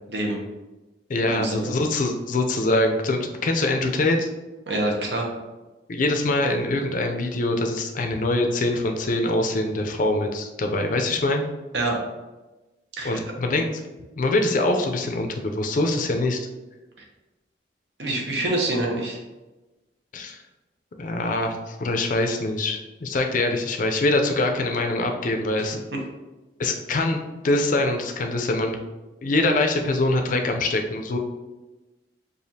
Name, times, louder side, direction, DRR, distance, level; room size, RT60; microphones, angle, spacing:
voice 1, 0.1-0.4 1.2-1.7 4.7-5.3 11.7-12.0 13.0-13.2 18.0-19.2, right 2 dB, 75° right, 0 dB, 0.8 m, -26 dB
voice 2, 1.1-4.3 5.9-11.4 13.0-13.8 14.2-16.4 20.1-20.4 21.0-25.8 26.6-28.8 29.2-31.2, left 2 dB, 50° left, 4 dB, 0.4 m, -24 dB
4.9 x 2.4 x 2.7 m, 1.1 s
head